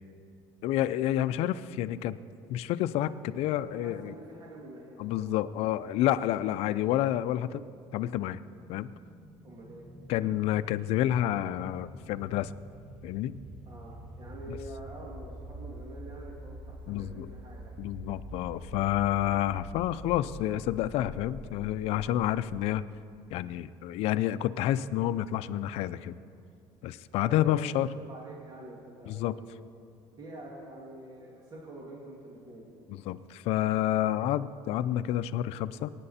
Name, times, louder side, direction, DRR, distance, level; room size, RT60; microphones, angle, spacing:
voice 1, 0.6-2.2 2.5-4.1 5.0-7.6 7.9-8.4 8.7-8.9 10.1-12.5 13.0-13.3 14.5-14.6 16.9-17.3 17.8-22.8 23.3-26.1 26.8-27.9 29.1-29.4 32.9-35.9, left 13 dB, 70° left, 14 dB, 0.5 m, -29 dB
voice 2, 3.6-5.3 9.4-9.9 13.7-17.7 27.1-27.6 28.0-29.6 30.2-32.7, right 1 dB, 40° right, -3 dB, 2.3 m, -46 dB
sound 1, 7.6-22.7, equal, 10° right, 1.5 m, -46 dB
22.5 x 9.9 x 4.3 m, 2.4 s
cardioid pair, 115°, 11 cm